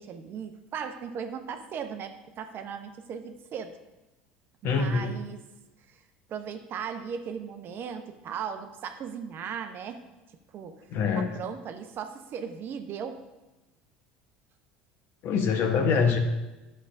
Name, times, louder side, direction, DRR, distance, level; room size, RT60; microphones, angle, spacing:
voice 1, 0.0-3.8 4.6-5.4 5.9-6.0 6.3-10.0 10.5-10.9 11.2-13.2 15.9-16.1, right 7 dB, 45° right, 7 dB, 0.7 m, -37 dB
voice 2, 4.6-5.1 10.9-11.3 15.2-16.2, left 5 dB, 50° left, 5 dB, 1.0 m, -24 dB
11.5 x 6.5 x 2.5 m, 1.1 s
hypercardioid pair, 70°, 5 cm